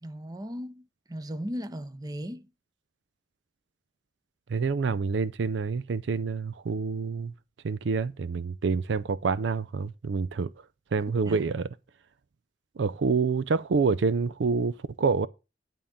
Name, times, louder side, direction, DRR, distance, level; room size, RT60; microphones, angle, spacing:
voice 1, 0.0-2.5 11.2-11.4, equal, 20° right, 0.7 m, -37 dB
voice 2, 4.5-7.3 7.6-10.5 10.9-11.7 12.8-15.3, right 4 dB, 70° right, 0.5 m, -27 dB
11.0 x 3.7 x 6.9 m
head